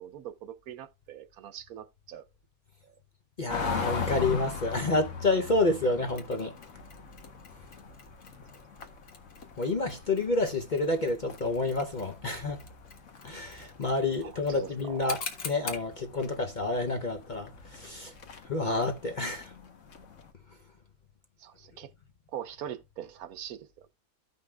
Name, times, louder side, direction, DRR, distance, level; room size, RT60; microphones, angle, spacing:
voice 1, 0.0-2.2 14.2-15.0 21.4-21.9 22.3-23.7, right 10 dB, 75° right, 1.2 m, -42 dB
voice 2, 3.4-6.5 9.6-12.6 13.2-18.1 18.5-19.5, left 2 dB, 40° left, 0.7 m, -29 dB
sound 1, 3.5-20.3, left 6 dB, 55° left, 1.4 m, -41 dB
Mechanisms, 6.2-15.9, left 5 dB, 75° left, 2.0 m, -46 dB
15.0 x 5.4 x 2.3 m
omnidirectional pair, 1.6 m